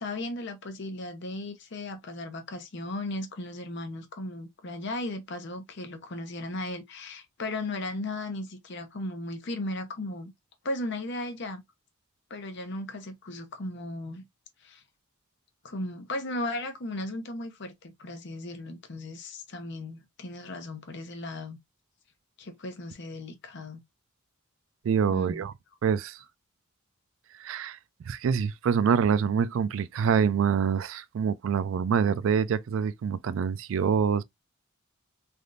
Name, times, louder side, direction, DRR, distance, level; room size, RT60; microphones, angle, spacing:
voice 1, 0.0-10.3 10.6-11.6 12.3-14.2 14.6-14.8 15.6-21.6 22.4-23.8 25.1-25.5, left 2 dB, 60° left, 0.8 m, -36 dB
voice 2, 24.8-25.5 25.8-26.2 27.4-27.8 28.1-34.2, right 7 dB, 70° right, 0.3 m, -25 dB
3.4 x 2.5 x 2.5 m
head